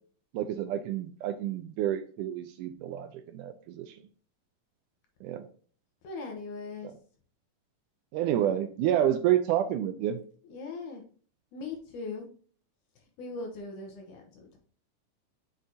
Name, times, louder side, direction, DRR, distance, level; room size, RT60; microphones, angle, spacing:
voice 1, 0.3-3.1 3.3-3.9 5.2-5.4 8.1-10.2, right 11 dB, 80° right, 8 dB, 1.9 m, -29 dB
voice 2, 6.0-6.9 10.4-11.0 11.5-12.3 13.0-14.6, left 3 dB, 70° left, 3 dB, 2.3 m, -40 dB
6.3 x 6.0 x 2.8 m, 0.43 s
omnidirectional pair, 3.9 m